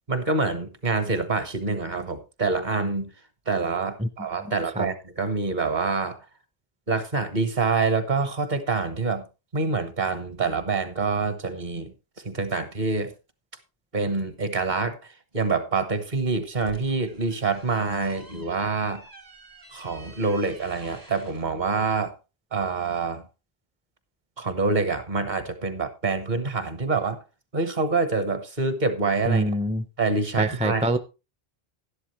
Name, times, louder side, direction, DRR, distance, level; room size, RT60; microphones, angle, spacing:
voice 1, 0.1-3.1 3.5-6.2 6.9-9.2 9.5-11.9 12.2-13.1 13.9-15.0 15.3-19.0 19.7-22.1 22.5-23.2 24.4-27.2 27.5-29.5 30.0-30.9, right 4 dB, 50° right, 1.3 m, -26 dB
sound 1, 16.3-21.5, right 1 dB, 80° right, 3.8 m, -49 dB
voice 2, 29.3-29.8 30.4-31.0, equal, 10° right, 0.5 m, -24 dB
11.5 x 11.5 x 3.1 m
omnidirectional pair, 1.0 m